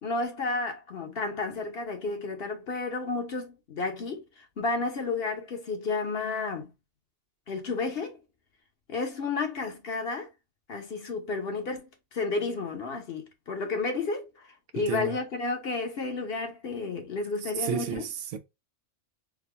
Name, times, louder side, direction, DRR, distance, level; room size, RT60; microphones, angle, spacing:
voice 1, 0.0-6.7 7.5-8.2 8.9-10.3 10.7-18.0, left 3 dB, 55° left, 1.2 m, -32 dB
voice 2, 14.7-15.2 17.4-18.4, right 7 dB, 80° right, 1.0 m, -32 dB
3.7 x 2.8 x 3.2 m
omnidirectional pair, 1.3 m